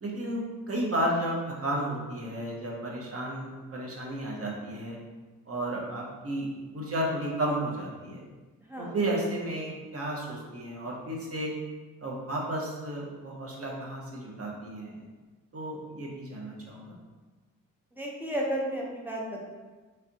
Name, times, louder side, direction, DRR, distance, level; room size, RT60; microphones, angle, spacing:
voice 1, 0.0-5.0 5.5-6.5 6.7-8.2 8.8-11.5 12.0-14.9 15.5-16.8, right 1 dB, 45° right, -2 dB, 0.9 m, -33 dB
voice 2, 18.0-19.5, right 1 dB, 5° right, -3 dB, 0.9 m, -32 dB
3.3 x 2.5 x 2.8 m, 1.3 s
supercardioid pair, 50°, 34 cm